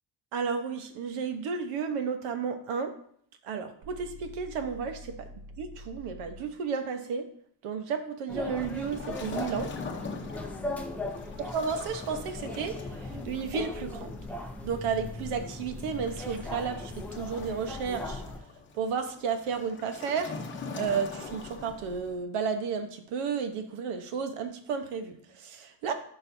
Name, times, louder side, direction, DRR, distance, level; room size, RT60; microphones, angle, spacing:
voice 1, 0.3-2.9 3.4-5.3 5.6-7.2 7.6-9.7 11.5-12.8 13.2-14.1 14.6-18.2 18.7-20.3 20.7-25.9, right 6 dB, 85° right, 7 dB, 1.2 m, -32 dB
sound 1, 3.8-6.6, left 1 dB, 60° right, 0.9 m, -47 dB
sound 2, 8.3-18.4, left 2 dB, 5° left, 0.4 m, -38 dB
Waves surf, 8.6-22.2, left 4 dB, 25° left, 0.8 m, -43 dB
12.5 x 5.5 x 2.7 m, 0.64 s
cardioid pair, 175°, 50 cm